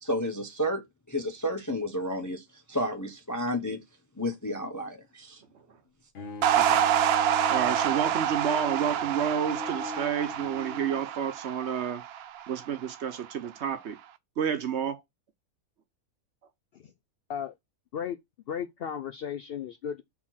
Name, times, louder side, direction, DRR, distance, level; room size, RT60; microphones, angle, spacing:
voice 1, 0.0-3.8 4.2-5.4, equal, 20° left, 0.5 m, -31 dB
Bowed string instrument, 6.1-11.2, left 3 dB, 55° left, 1.4 m, -40 dB
sound 1, 6.4-12.9, right 10 dB, 80° right, 0.5 m, -27 dB
voice 2, 7.5-12.0 12.5-14.0 14.4-15.0, right 8 dB, 55° right, 0.9 m, -30 dB
voice 3, 18.5-20.0, left 8 dB, 85° left, 0.5 m, -34 dB
4.3 x 4.3 x 5.6 m
omnidirectional pair, 1.6 m